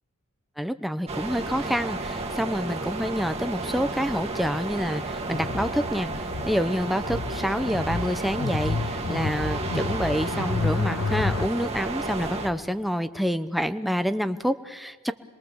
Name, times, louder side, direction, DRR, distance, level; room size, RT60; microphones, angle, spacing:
voice 1, 0.6-6.1 6.5-15.1, equal, ahead, 10 dB, 0.8 m, -27 dB
sound 1, 1.1-12.5, right 2 dB, 30° right, 1.9 m, -32 dB
sound 2, 5.3-11.5, left 3 dB, 80° left, 0.8 m, -30 dB
27.0 x 22.0 x 7.1 m, 1.3 s
head